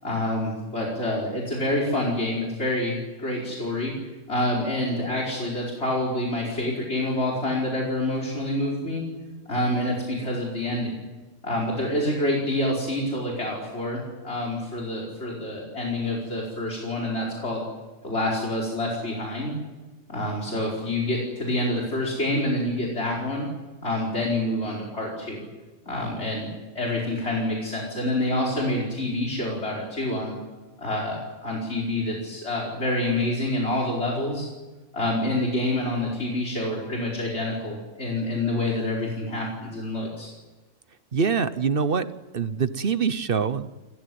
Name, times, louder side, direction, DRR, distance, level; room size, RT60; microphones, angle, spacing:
voice 1, 0.0-3.9 4.3-9.0 9.5-11.0 11.4-17.6 18.0-19.5 20.1-23.5 23.8-25.5 25.8-30.3 30.8-34.5 34.9-40.3, left 1 dB, 60° left, -3 dB, 5.1 m, -27 dB
voice 2, 41.1-42.1 42.3-43.7, right 6 dB, 50° right, 13 dB, 1.1 m, -24 dB
30.0 x 15.5 x 9.4 m, 1.2 s
omnidirectional pair, 1.3 m